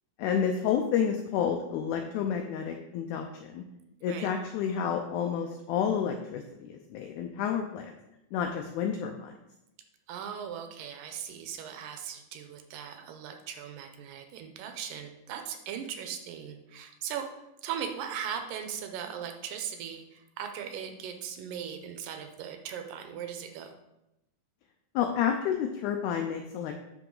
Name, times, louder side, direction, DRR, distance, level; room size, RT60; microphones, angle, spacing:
voice 1, 0.2-3.6 4.0-7.9 8.3-9.3 25.0-26.7, left 8 dB, 80° left, 4 dB, 1.8 m, -30 dB
voice 2, 10.1-23.7, right 8 dB, 85° right, 6 dB, 2.3 m, -39 dB
10.0 x 3.8 x 3.8 m, 0.92 s
omnidirectional pair, 3.9 m